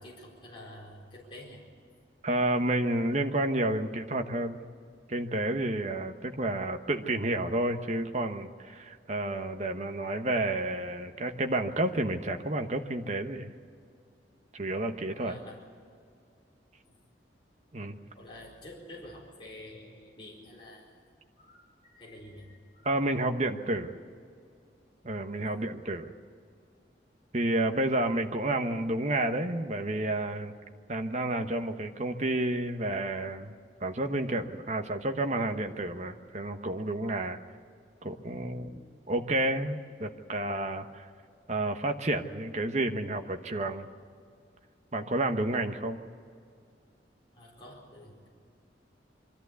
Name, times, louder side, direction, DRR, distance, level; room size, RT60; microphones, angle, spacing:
voice 1, 0.0-1.6 15.1-15.6 16.9-17.0 18.1-21.0 21.4-23.0 25.3-25.5 47.3-48.3, left 1 dB, 30° left, -4 dB, 4.4 m, -48 dB
voice 2, 2.2-4.6 5.1-13.5 14.5-15.3 17.7-18.0 22.8-23.9 25.0-26.1 27.3-30.5 30.9-33.5 33.8-37.4 38.0-38.8 39.1-41.1 41.5-43.9 44.9-46.0, right 1 dB, 40° right, 6 dB, 1.1 m, -30 dB
23.5 x 14.0 x 8.3 m, 2.3 s
head